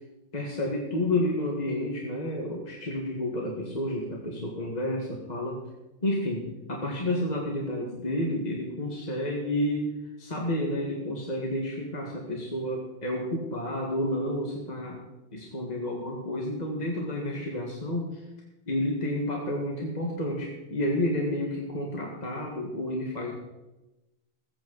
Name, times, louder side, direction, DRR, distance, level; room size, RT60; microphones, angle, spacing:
voice 1, 0.3-5.6 6.0-6.4 6.7-9.9 10.2-15.0 15.3-18.2 18.7-23.3, left 1 dB, 40° left, -1 dB, 1.8 m, -30 dB
20.5 x 8.6 x 4.0 m, 1.0 s
omnidirectional pair, 1.1 m